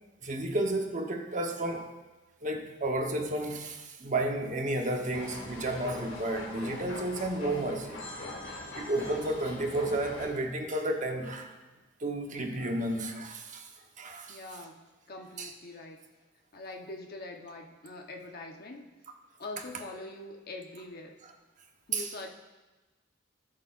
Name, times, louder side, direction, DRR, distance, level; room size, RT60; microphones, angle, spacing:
voice 1, 0.2-2.0 2.4-8.0 8.7-11.5 12.0-13.7 14.0-14.4 15.4-15.5 21.9-22.1, right 1 dB, 40° right, 3 dB, 1.0 m, -32 dB
sound 1, 5.1-10.3, left 2 dB, 75° left, 2.7 m, -41 dB
voice 2, 14.3-16.1 16.5-18.9 19.4-21.2 21.9-22.3, left 2 dB, 55° left, 2 dB, 1.0 m, -43 dB
17.5 x 6.5 x 2.5 m, 1.2 s
head